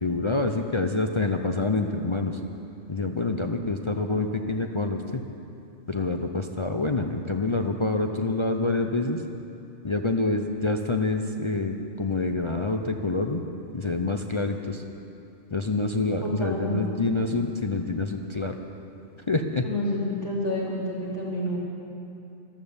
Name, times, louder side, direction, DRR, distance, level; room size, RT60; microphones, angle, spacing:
voice 1, 0.0-2.4 2.9-5.2 5.9-9.2 9.8-13.4 13.7-14.8 15.5-18.6 19.3-19.6, left 3 dB, 35° left, 4 dB, 0.4 m, -27 dB
voice 2, 16.2-16.7 19.6-21.6, left 1 dB, 60° left, -6 dB, 3.9 m, -29 dB
14.5 x 13.0 x 7.1 m, 2.7 s
omnidirectional pair, 1.3 m